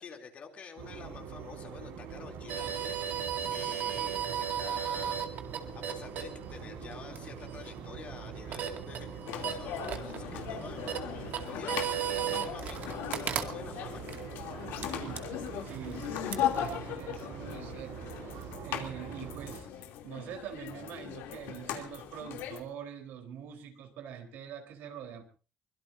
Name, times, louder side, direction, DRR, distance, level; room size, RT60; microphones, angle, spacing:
voice 1, 0.0-5.3 5.6-14.0, left 6 dB, 40° left, 3 dB, 3.1 m, -48 dB
sound 1, 0.8-19.6, right 7 dB, 90° right, 6.0 m, -44 dB
sound 2, 2.5-16.9, right 9 dB, 55° right, 2.2 m, -37 dB
sound 3, 9.3-22.6, left 10 dB, 90° left, 3.0 m, -38 dB
voice 2, 14.8-15.3 15.6-25.2, right 8 dB, 70° right, 5 dB, 4.0 m, -44 dB
24.0 x 22.0 x 2.7 m, 0.37 s
cardioid pair, 155°, 4 cm